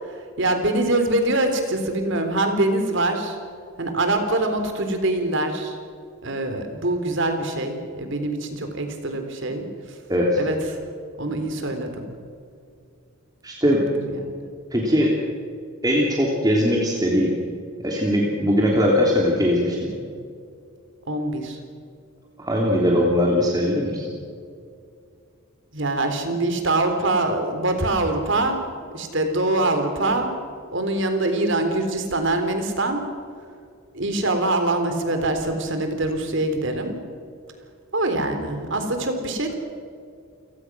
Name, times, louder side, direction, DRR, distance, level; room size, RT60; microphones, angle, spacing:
voice 1, 0.0-3.4 3.8-5.8 6.2-10.0 10.4-10.6 11.2-12.1 13.7-14.3 21.1-21.6 25.7-28.6 28.9-30.3 30.7-33.0 33.9-37.0 37.9-39.5, right 2 dB, 60° right, 6 dB, 3.6 m, -24 dB
voice 2, 10.1-10.4 13.4-13.8 14.7-15.1 15.8-17.3 17.8-19.9 22.4-24.1, equal, 20° right, -2 dB, 3.1 m, -20 dB
29.0 x 18.0 x 6.2 m, 2.3 s
head